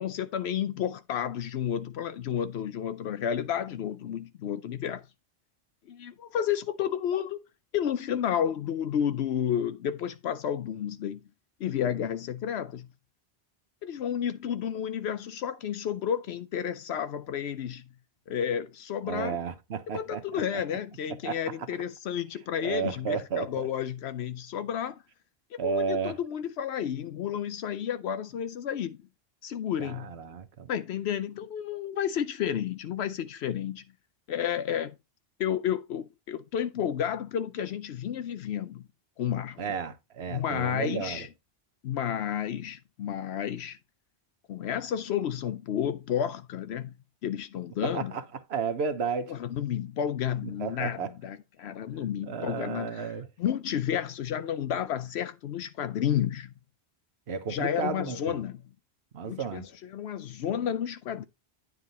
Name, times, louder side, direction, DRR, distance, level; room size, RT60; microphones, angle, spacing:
voice 1, 0.0-5.1 5.9-7.4 7.7-11.2 11.6-12.9 13.8-17.8 18.3-19.4 19.9-25.0 25.6-29.0 29.4-30.2 30.7-33.8 34.3-34.9 35.4-38.9 39.2-39.6 40.3-41.3 41.8-43.8 44.5-46.9 47.2-48.1 49.3-56.5 57.5-58.6 59.2-61.2, left 9 dB, 80° left, 0.9 m, -31 dB
voice 2, 19.1-20.2 21.2-21.4 22.6-23.7 25.6-26.2 29.8-30.7 39.6-41.2 47.8-48.2 48.5-49.3 50.4-51.1 52.3-53.3 57.3-58.4 59.1-59.6, right 6 dB, 75° right, 1.2 m, -32 dB
9.6 x 4.8 x 4.0 m
omnidirectional pair, 1.1 m